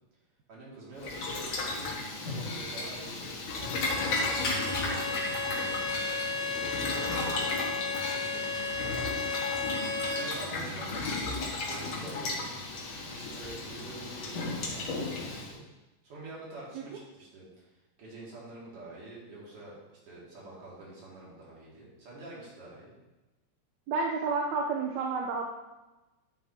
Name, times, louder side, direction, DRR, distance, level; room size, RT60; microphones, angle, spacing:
voice 1, 0.5-9.2 10.1-12.5 13.1-15.6 16.0-17.7 18.0-22.9, right 2 dB, 50° right, -6 dB, 3.3 m, -47 dB
Boiling, 1.0-15.5, left 2 dB, 60° left, 2.7 m, -34 dB
Bowed string instrument, 3.5-10.3, left 4 dB, 85° left, 2.4 m, -34 dB
voice 2, 23.9-25.4, right 4 dB, 75° right, 1 dB, 2.1 m, -30 dB
10.5 x 7.7 x 2.9 m, 1.1 s
omnidirectional pair, 3.4 m